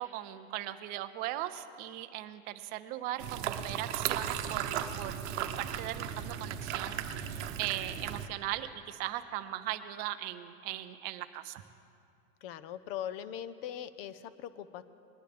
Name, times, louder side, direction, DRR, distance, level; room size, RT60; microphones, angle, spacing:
voice 1, 0.0-11.6, right 14 dB, 25° right, 10 dB, 0.4 m, -39 dB
sound 1, 3.2-8.3, right 9 dB, 55° right, 0.9 m, -36 dB
voice 2, 12.4-14.8, left 10 dB, 45° left, 14 dB, 0.7 m, -40 dB
20.5 x 11.0 x 3.4 m, 2.5 s
hypercardioid pair, 130°, 40 cm